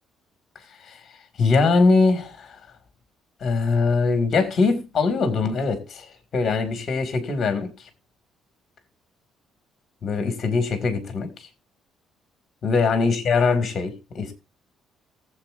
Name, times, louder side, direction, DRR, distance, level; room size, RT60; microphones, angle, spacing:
voice 1, 1.4-2.6 3.4-7.9 10.0-11.5 12.6-14.3, left 4 dB, 35° left, 2.0 m, -22 dB
19.5 x 7.5 x 2.5 m
cardioid pair, 150°, 0 cm